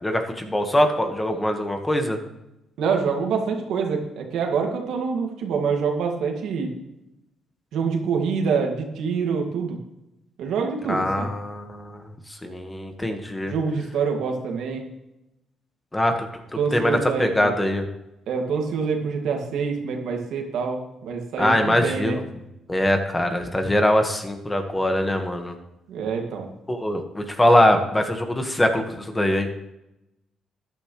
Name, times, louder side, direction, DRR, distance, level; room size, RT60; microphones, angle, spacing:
voice 1, 0.0-2.2 10.9-12.0 12.4-13.5 15.9-16.3 16.7-17.8 21.4-22.2 22.7-25.5 26.7-29.5, left 1 dB, 15° left, 5 dB, 1.6 m, -22 dB
voice 2, 2.8-6.7 7.7-9.8 10.4-11.3 13.5-14.8 16.6-17.5 18.3-22.2 25.9-26.5, right 5 dB, 80° right, 2 dB, 2.2 m, -26 dB
13.0 x 10.5 x 3.3 m, 0.90 s
cardioid pair, 90°, 0 cm